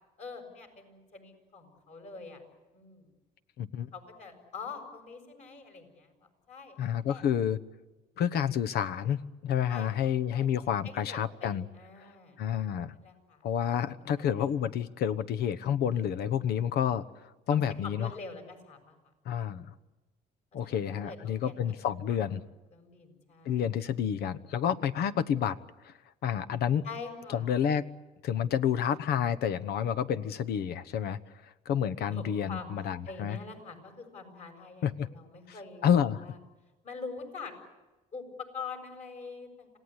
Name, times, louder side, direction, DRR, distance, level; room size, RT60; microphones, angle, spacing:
voice 1, 0.2-2.4 2.7-3.1 3.9-6.1 6.5-7.2 9.7-10.5 10.8-12.4 12.9-13.4 14.2-14.5 17.5-19.0 19.4-19.7 20.6-21.8 22.1-22.2 22.7-23.6 26.8-27.5 32.1-32.7 33.1-35.9 36.2-36.4 36.8-37.5 38.1-39.7, left 4 dB, 40° left, 5 dB, 6.9 m, -45 dB
voice 2, 3.6-3.9 6.8-7.6 8.2-11.6 12.4-12.9 13.4-17.0 17.5-18.1 19.2-19.7 20.5-22.4 23.4-25.6 25.8-25.9 26.2-26.8 27.3-27.8 28.2-31.2 31.7-33.4 34.8-35.1 35.8-36.2, left 9 dB, 70° left, 15 dB, 1.1 m, -29 dB
27.0 x 17.5 x 9.7 m, 1.1 s
cardioid pair, 110°, 17 cm